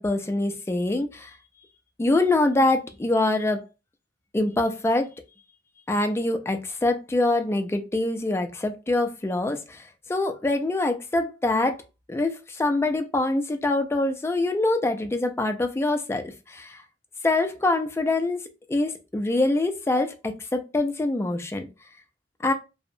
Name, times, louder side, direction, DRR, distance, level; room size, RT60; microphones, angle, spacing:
voice 1, 0.0-1.3 2.0-3.6 4.3-5.1 5.9-11.8 12.1-16.8 17.2-21.7 22.4-22.5, left 2 dB, 15° left, 0.3 m, -24 dB
2.7 x 2.0 x 2.5 m
head